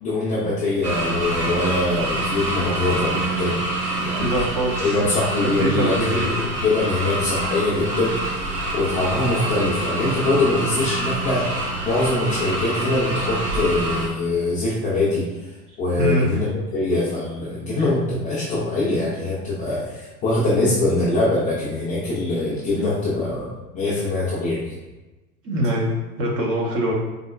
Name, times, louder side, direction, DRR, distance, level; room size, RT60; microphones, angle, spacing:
voice 1, 0.0-3.6 3.9-4.2 4.8-6.2 6.6-8.5 8.7-15.5 15.8-23.5 23.7-24.7, left 2 dB, 20° left, -8 dB, 0.3 m, -23 dB
sound 1, 0.8-14.1, right 2 dB, 85° right, 0.9 m, -26 dB
voice 2, 4.2-5.0 5.6-6.4 16.0-16.3 25.4-26.9, equal, 30° right, -2 dB, 0.7 m, -23 dB
3.8 x 2.1 x 2.3 m, 1.1 s
hypercardioid pair, 95°, 47 cm